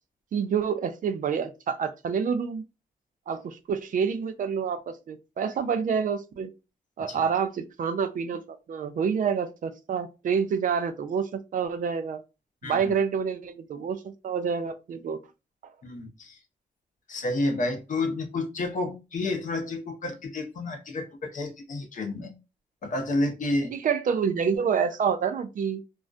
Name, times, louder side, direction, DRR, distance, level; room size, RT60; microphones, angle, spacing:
voice 1, 0.3-2.6 3.3-6.5 7.0-12.2 12.6-15.2 15.6-15.7 23.7-25.8, right 6 dB, 55° right, 0.4 m, -28 dB
voice 2, 12.6-12.9 15.8-16.4 17.1-22.3 22.8-23.7, left 2 dB, 55° left, 0.7 m, -30 dB
2.4 x 2.1 x 2.5 m
cardioid pair, 85°, 16 cm